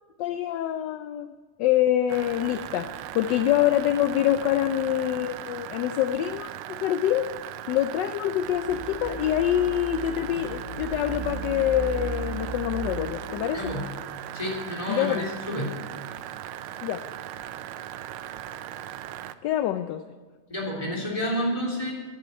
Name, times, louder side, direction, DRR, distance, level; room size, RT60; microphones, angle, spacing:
voice 1, 0.2-1.3 1.6-7.3 7.7-13.6 14.9-15.2 16.8-17.0 19.4-20.0, left 12 dB, 75° left, 10 dB, 1.1 m, -25 dB
sound 1, 2.1-19.3, right 12 dB, 90° right, 1.5 m, -38 dB
sound 2, 8.5-13.8, right 4 dB, 35° right, 0.8 m, -36 dB
voice 2, 13.5-14.0 14.3-15.8 20.5-21.9, equal, 15° left, -4 dB, 3.3 m, -30 dB
10.5 x 9.6 x 9.6 m, 1.5 s
omnidirectional pair, 2.3 m